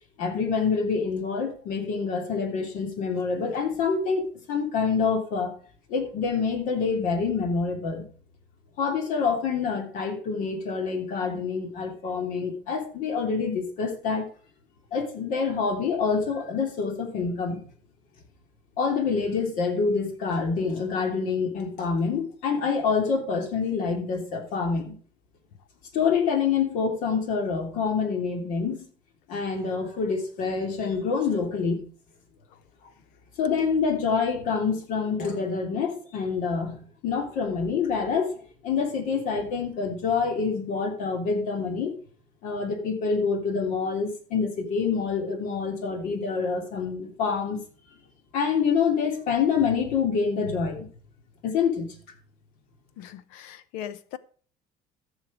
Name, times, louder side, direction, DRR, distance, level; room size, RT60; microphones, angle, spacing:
voice 1, 0.2-5.5 5.9-8.1 8.8-14.3 14.9-17.6 18.8-24.9 25.9-28.9 29.3-31.9 33.4-38.3 38.6-41.9 42.4-47.6 48.3-50.9 51.4-51.9, left 5 dB, 70° left, 2.9 m, -26 dB
voice 2, 53.0-54.2, left 10 dB, 90° left, 0.9 m, -39 dB
14.5 x 6.5 x 5.0 m
cardioid pair, 125°, 14 cm